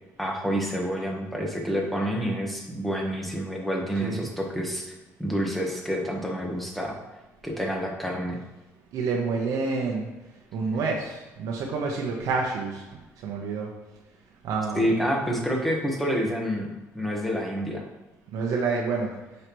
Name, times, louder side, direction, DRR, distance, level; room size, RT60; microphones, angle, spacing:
voice 1, 0.2-4.9 5.2-7.0 7.4-8.4 14.7-16.7 16.9-17.8, equal, ahead, -1 dB, 1.4 m, -28 dB
voice 2, 8.9-10.1 10.5-12.8 13.2-13.7 14.4-14.9 18.3-19.1, right 4 dB, 75° right, 0 dB, 1.0 m, -28 dB
7.9 x 5.6 x 3.1 m, 1.1 s
cardioid pair, 120°, 6 cm